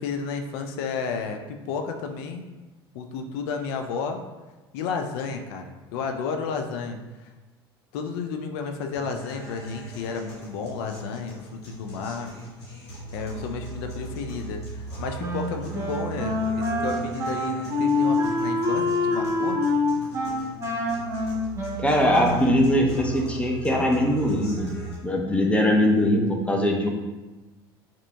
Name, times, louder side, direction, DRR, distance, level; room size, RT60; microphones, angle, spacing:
voice 1, 0.0-2.4 2.9-4.2 4.7-7.3 7.9-12.3 13.1-19.6, left 5 dB, 65° left, 5 dB, 0.4 m, -32 dB
sound 1, 8.9-24.9, right 3 dB, 85° left, 1.4 m, -39 dB
Wind instrument woodwind instrument, 15.2-22.7, left 2 dB, 20° right, 1.1 m, -26 dB
voice 2, 21.8-24.8 25.0-26.9, left 1 dB, 10° left, 1 dB, 0.7 m, -21 dB
4.9 x 2.8 x 2.3 m, 1.2 s
hypercardioid pair, 70°, 14 cm